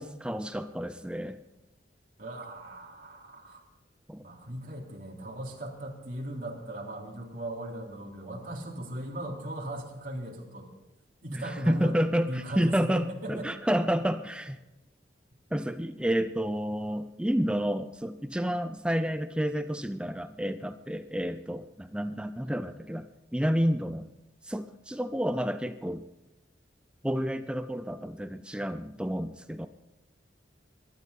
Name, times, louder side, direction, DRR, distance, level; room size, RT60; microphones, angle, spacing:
voice 1, 0.0-1.4 4.1-4.2 11.3-14.6 15.5-23.1 23.3-24.1 24.4-26.0 27.0-29.7, equal, 5° right, 10 dB, 0.5 m, -30 dB
voice 2, 2.2-3.6 4.2-10.7 11.2-13.5 22.4-22.5, right 1 dB, 45° right, -1 dB, 3.4 m, -38 dB
23.0 x 12.5 x 4.1 m, 0.97 s
head